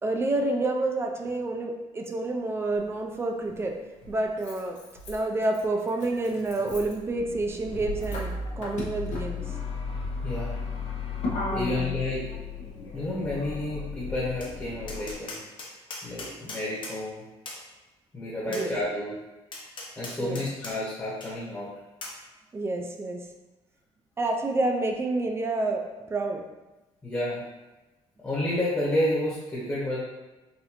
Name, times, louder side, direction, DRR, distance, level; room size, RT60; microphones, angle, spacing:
voice 1, 0.0-3.8 4.1-4.8 5.1-9.5 11.3-11.9 18.5-18.7 20.2-20.5 22.5-23.3 24.2-26.4, right 2 dB, 20° right, 3 dB, 0.4 m, -29 dB
Motor vehicle (road), 2.8-2.9 4.0-15.1, left 3 dB, 85° left, 0.9 m, -35 dB
voice 2, 10.2-10.6 11.5-12.3 12.9-15.4 16.0-17.2 18.1-19.2 20.0-21.7 27.0-27.4 28.2-30.0, left 1 dB, 20° left, -8 dB, 1.0 m, -30 dB
Tap, 14.4-14.5 14.9-17.0 17.5-17.6 18.5-18.7 19.5-20.7 21.2-21.3 22.0-22.2, left 2 dB, 45° left, 0.8 m, -39 dB
4.0 x 2.6 x 2.9 m, 1.1 s
cardioid pair, 140°, 12 cm